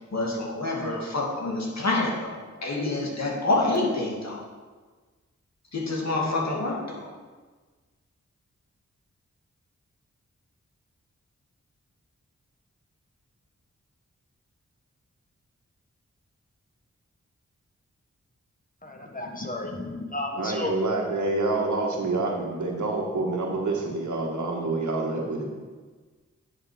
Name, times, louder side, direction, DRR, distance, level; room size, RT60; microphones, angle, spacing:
voice 1, 0.1-4.4 5.7-7.1, left 2 dB, 65° left, -2 dB, 2.3 m, -27 dB
voice 2, 18.8-20.7, left 2 dB, 30° left, 1 dB, 1.3 m, -33 dB
voice 3, 20.3-25.5, right 2 dB, 80° right, 0 dB, 1.8 m, -27 dB
10.5 x 6.2 x 5.0 m, 1.4 s
cardioid pair, 55°, 29 cm